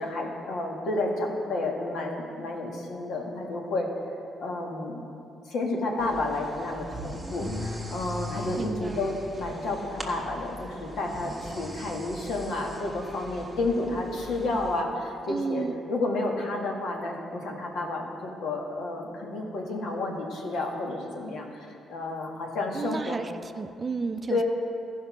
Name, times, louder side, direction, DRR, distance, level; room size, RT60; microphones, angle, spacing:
voice 1, 0.0-3.9 4.4-5.0 5.5-23.2 24.3-24.4, left 2 dB, 75° left, 0 dB, 1.6 m, -31 dB
sound 1, 6.0-14.8, equal, 5° right, 1.3 m, -40 dB
voice 2, 8.6-9.1 15.3-15.8 22.7-24.4, right 4 dB, 30° right, 9 dB, 0.5 m, -32 dB
14.0 x 5.4 x 6.0 m, 2.6 s
cardioid pair, 90°, 0 cm